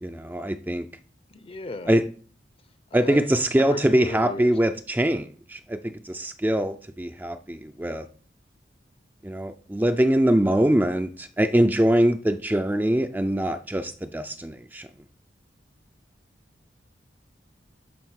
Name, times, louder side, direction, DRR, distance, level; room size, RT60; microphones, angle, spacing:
voice 1, 0.0-0.9 1.9-2.1 2.9-8.1 9.2-14.9, right 1 dB, 10° right, 0.5 m, -23 dB
voice 2, 1.3-2.0 2.9-3.3 3.6-4.5, left 2 dB, 35° left, 0.7 m, -36 dB
10.5 x 3.7 x 6.4 m
head